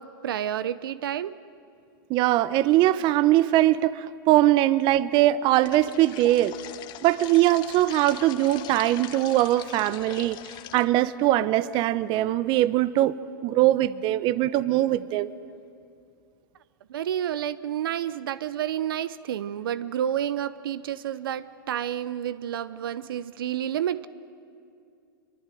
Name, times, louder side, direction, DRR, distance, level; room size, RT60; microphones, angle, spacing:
voice 1, 0.0-1.4 16.9-24.1, right 10 dB, 75° right, 15 dB, 0.8 m, -30 dB
voice 2, 2.1-6.6 7.0-10.4 10.7-13.1 13.4-15.3, right 15 dB, 40° right, 16 dB, 0.9 m, -21 dB
sound 1, 5.6-10.9, left 13 dB, 40° left, 1.1 m, -42 dB
24.5 x 23.0 x 9.2 m, 2.5 s
hypercardioid pair, 115°, 12 cm